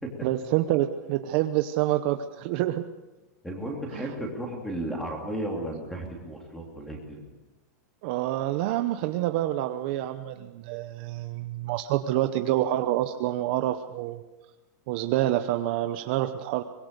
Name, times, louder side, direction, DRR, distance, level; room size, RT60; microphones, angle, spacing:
voice 1, 0.2-2.8 3.9-4.1 8.0-14.2 14.9-16.6, right 14 dB, 35° right, 8 dB, 0.8 m, -27 dB
voice 2, 3.4-7.2, right 1 dB, 5° left, 1 dB, 3.1 m, -34 dB
23.5 x 21.0 x 6.8 m, 1.1 s
supercardioid pair, 180°, 10 cm